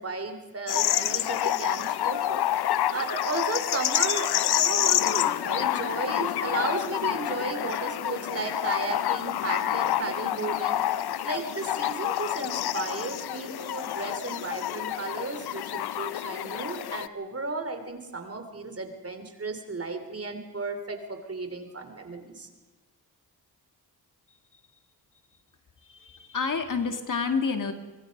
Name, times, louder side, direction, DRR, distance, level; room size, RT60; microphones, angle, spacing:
voice 1, 0.0-2.4 2.9-22.5, right 3 dB, 40° right, 6 dB, 3.3 m, -34 dB
sound 1, 0.7-17.1, left 12 dB, 85° left, 0.7 m, -28 dB
voice 2, 25.8-27.7, left 5 dB, 55° left, 6 dB, 2.2 m, -29 dB
23.5 x 22.0 x 5.3 m, 1.2 s
cardioid pair, 75°, 37 cm